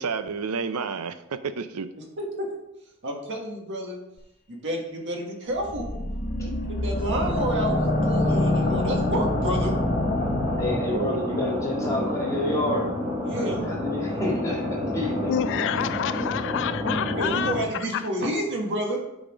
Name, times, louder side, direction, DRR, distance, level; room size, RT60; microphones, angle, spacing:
voice 1, 0.0-1.9 10.9-11.2, right 5 dB, 80° right, 0.5 m, -30 dB
voice 2, 2.0-2.5 3.0-4.0 4.5-6.0 6.4-9.8 13.2-13.6 15.8-15.9 17.1-19.0, right 1 dB, 55° right, 1.6 m, -30 dB
sound 1, 5.6-11.2, left 1 dB, 40° left, 1.1 m, -26 dB
sound 2, 7.1-17.6, left 1 dB, 20° right, 2.8 m, -29 dB
voice 3, 10.6-12.9 13.3-15.4, left 1 dB, 15° left, 2.0 m, -29 dB
voice 4, 15.3-17.5 17.9-18.0, left 9 dB, 55° left, 0.3 m, -27 dB
9.1 x 4.2 x 5.0 m
head